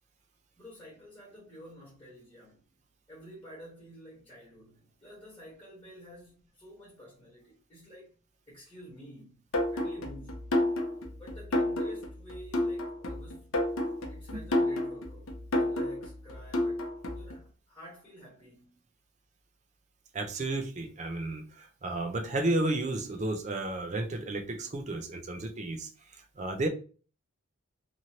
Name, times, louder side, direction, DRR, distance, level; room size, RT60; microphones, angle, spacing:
voice 1, 0.6-2.6 3.1-8.1 8.5-9.4 9.7-10.4 11.1-13.5 14.1-18.8, equal, 20° left, 1.2 m, -50 dB
sound 1, 9.5-17.3, left 1 dB, 65° left, 0.6 m, -30 dB
voice 2, 20.1-26.7, right 2 dB, 30° right, 0.4 m, -32 dB
2.9 x 2.6 x 2.8 m
head